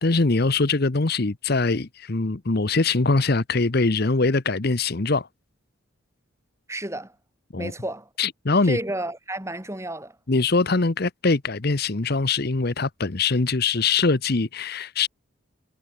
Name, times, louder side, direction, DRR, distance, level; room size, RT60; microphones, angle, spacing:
voice 1, 0.0-5.3 7.5-7.7 8.2-8.8 10.3-15.1, left 3 dB, 50° left, 0.9 m, -22 dB
voice 2, 6.7-7.1 7.6-8.1 8.6-10.2, right 1 dB, 15° right, 4.4 m, -31 dB
head